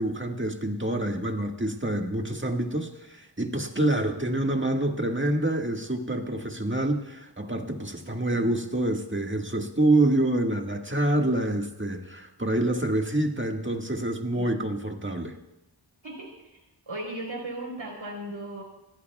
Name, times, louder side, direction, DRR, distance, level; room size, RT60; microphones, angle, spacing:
voice 1, 0.0-15.4, right 1 dB, 25° right, 2 dB, 1.8 m, -27 dB
voice 2, 16.0-16.6 16.9-18.6, right 1 dB, 80° right, -1 dB, 4.1 m, -37 dB
26.0 x 17.5 x 2.4 m, 0.94 s
wide cardioid pair, 50°, 45 cm